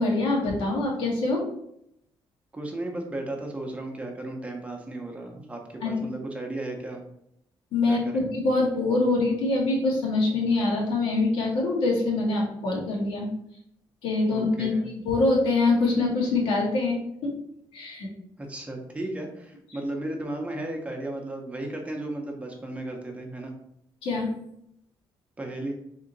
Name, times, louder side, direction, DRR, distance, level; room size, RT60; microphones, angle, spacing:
voice 1, 0.0-1.4 5.8-6.0 7.7-13.3 14.0-14.7 15.0-17.3 17.7-18.1 24.0-24.3, left 2 dB, 85° left, -2 dB, 1.3 m, -24 dB
voice 2, 2.5-7.0 7.9-8.2 14.3-14.8 18.4-23.5 25.4-25.7, right 1 dB, 15° right, 2 dB, 0.6 m, -35 dB
3.6 x 2.7 x 3.9 m, 0.76 s
cardioid pair, 145°, 9 cm